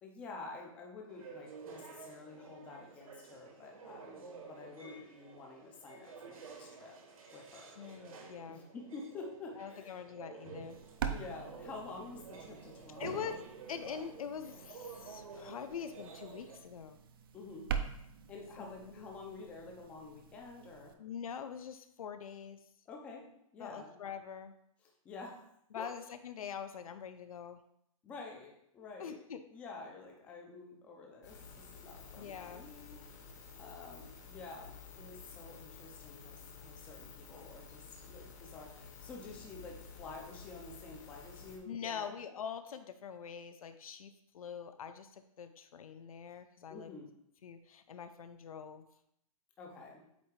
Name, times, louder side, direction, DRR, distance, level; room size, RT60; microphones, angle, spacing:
voice 1, 0.0-7.0 7.3-7.8 8.5-10.0 11.1-13.4 17.3-17.7 18.3-21.0 22.9-23.3 23.5-23.9 24.8-25.4 25.8-25.9 28.0-29.2 29.5-33.2 33.6-42.2 46.7-47.1 49.6-50.0, left 3 dB, 5° left, 0 dB, 0.5 m, -49 dB
sound 1, 1.1-16.6, right 5 dB, 75° right, 1.5 m, -51 dB
voice 2, 7.8-8.6 9.6-10.8 13.0-13.4 13.7-17.0 18.6-19.1 21.0-22.6 23.6-24.5 25.7-27.6 29.0-29.4 32.2-32.6 41.7-46.9 47.4-48.8, left 7 dB, 75° left, 9 dB, 0.6 m, -44 dB
sound 2, 10.7-20.9, right 7 dB, 40° right, 0.5 m, -44 dB
sound 3, 31.2-41.6, left 5 dB, 30° left, 0.9 m, -52 dB
8.2 x 2.8 x 4.6 m, 0.74 s
hypercardioid pair, 170°, 18 cm